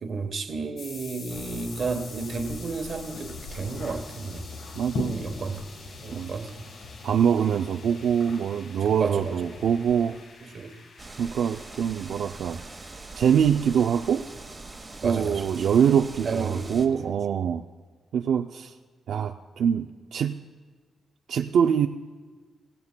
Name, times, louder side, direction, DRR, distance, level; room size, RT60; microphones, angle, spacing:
voice 1, 0.0-4.5 5.0-5.6 6.0-6.6 9.0-9.6 10.4-10.8 15.0-15.7 16.2-17.1, right 4 dB, 45° right, 7 dB, 1.0 m, -32 dB
sound 1, 0.8-17.1, left 4 dB, 60° left, 1.6 m, -48 dB
sound 2, 1.3-10.2, left 3 dB, 85° left, 1.2 m, -41 dB
voice 2, 4.8-5.1 6.1-6.3 7.0-10.2 11.2-12.6 13.1-14.3 15.0-17.6 18.1-18.7 19.1-20.4 21.3-21.9, right 8 dB, 75° right, 5 dB, 0.4 m, -24 dB
sound 3, 11.0-16.9, right 3 dB, 20° right, 1.1 m, -43 dB
26.0 x 16.5 x 2.2 m, 1.4 s
wide cardioid pair, 170°, 0 cm